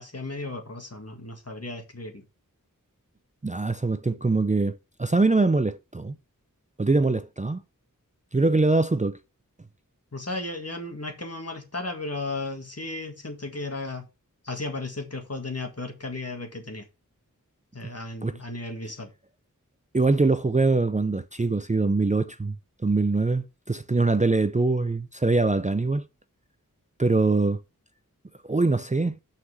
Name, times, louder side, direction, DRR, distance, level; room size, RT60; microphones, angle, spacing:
voice 1, 0.0-2.2 10.1-14.1 14.4-16.9 17.7-19.1, left 2 dB, 45° left, 1.8 m, -35 dB
voice 2, 3.4-6.1 6.8-7.6 8.3-9.2 18.2-18.3 19.9-22.5 22.8-26.0 27.0-27.6 28.5-29.2, right 3 dB, 20° right, 0.5 m, -23 dB
5.9 x 5.9 x 5.4 m
wide cardioid pair, 40°, 34 cm